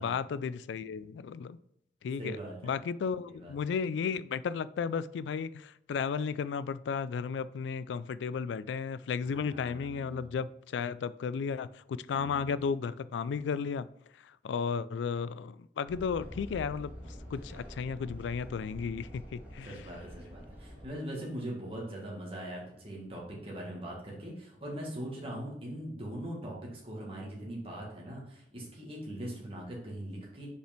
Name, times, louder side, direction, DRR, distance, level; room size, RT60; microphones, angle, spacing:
voice 1, 0.0-1.6 2.0-2.4 2.6-13.9 14.2-16.9 17.3-19.8, left 6 dB, 85° left, 0.3 m, -34 dB
voice 2, 2.2-2.6 3.4-3.5 9.3-10.3 12.1-12.5 19.7-30.5, right 1 dB, 30° right, 1.8 m, -41 dB
sound 1, 15.9-20.9, equal, 10° right, 1.7 m, -46 dB
5.3 x 5.0 x 4.4 m
head